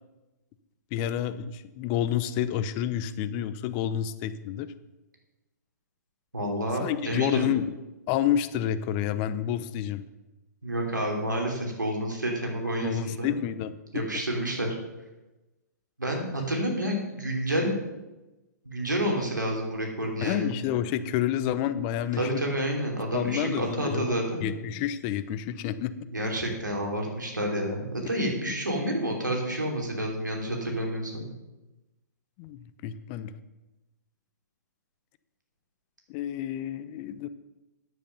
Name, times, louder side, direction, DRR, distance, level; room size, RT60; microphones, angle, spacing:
voice 1, 0.9-4.7 6.8-7.8 8.1-10.0 12.8-14.2 20.2-22.6 23.1-25.9 28.5-28.6 32.4-33.3 36.1-37.3, left 10 dB, 35° left, 13 dB, 0.7 m, -29 dB
voice 2, 6.3-7.5 10.6-13.3 13.9-14.7 16.0-17.7 18.6-20.5 22.2-24.4 26.1-31.2, right 1 dB, 90° right, 0 dB, 3.0 m, -29 dB
9.4 x 8.4 x 5.4 m, 1.1 s
figure-of-eight pair, 125°, 10 cm